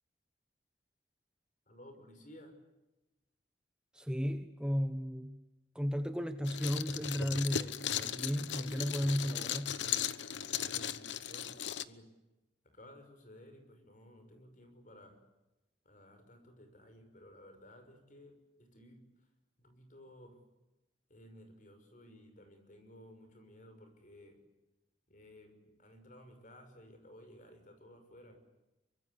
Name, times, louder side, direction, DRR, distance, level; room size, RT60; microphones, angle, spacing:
voice 1, 1.7-2.6 10.6-11.6 11.9-12.1 12.6-15.2 15.8-19.0 19.6-20.4 21.1-24.4 25.1-28.4, left 1 dB, 45° left, 7 dB, 5.9 m, -56 dB
voice 2, 3.9-5.4 5.7-9.8, equal, 5° right, 8 dB, 1.2 m, -34 dB
sound 1, 6.4-11.8, left 9 dB, 90° left, 1.0 m, -37 dB
24.5 x 24.0 x 9.8 m, 0.98 s
head